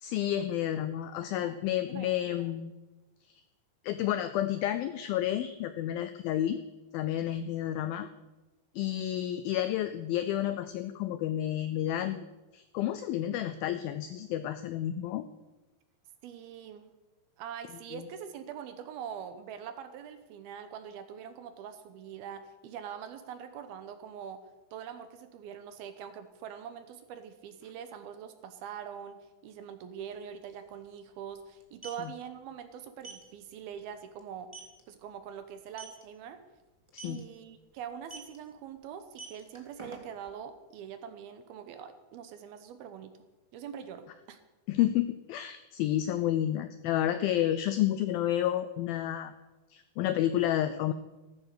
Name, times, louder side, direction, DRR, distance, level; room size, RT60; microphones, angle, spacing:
voice 1, 0.0-2.7 3.8-6.6 6.9-8.1 8.8-12.2 12.5-15.2 17.9-18.0 36.9-37.2 44.7-49.3 49.7-50.9, left 12 dB, 90° left, 12 dB, 2.1 m, -30 dB
voice 2, 1.9-2.4 16.2-16.9 17.4-24.4 24.7-34.5 34.9-36.4 37.0-43.1 43.5-44.4, right 8 dB, 70° right, 9 dB, 2.6 m, -43 dB
sound 1, 30.0-30.1 30.3-30.5 31.5-32.0 33.0-33.2 33.7-33.8 34.2-34.3 34.5-34.8 35.7-36.0 36.9-37.2 38.0-38.4 39.0-40.3, right 3 dB, 20° right, 0.8 m, -45 dB
14.5 x 13.0 x 6.7 m, 1.1 s
omnidirectional pair, 5.0 m